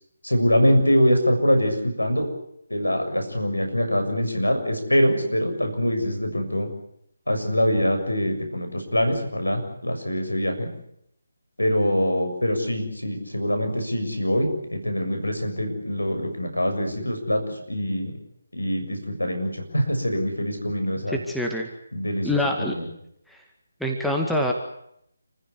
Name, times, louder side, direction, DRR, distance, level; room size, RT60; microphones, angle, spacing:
voice 1, 0.2-2.3 2.7-6.7 7.3-10.7 11.6-18.1 18.5-21.2 21.9-22.9, equal, 85° left, 6 dB, 7.0 m, -24 dB
voice 2, 21.1-21.7 22.2-22.8 23.3-23.4 23.8-24.5, left 1 dB, ahead, 0 dB, 2.0 m, -25 dB
28.5 x 15.5 x 9.7 m, 0.75 s
figure-of-eight pair, 150°, 0 cm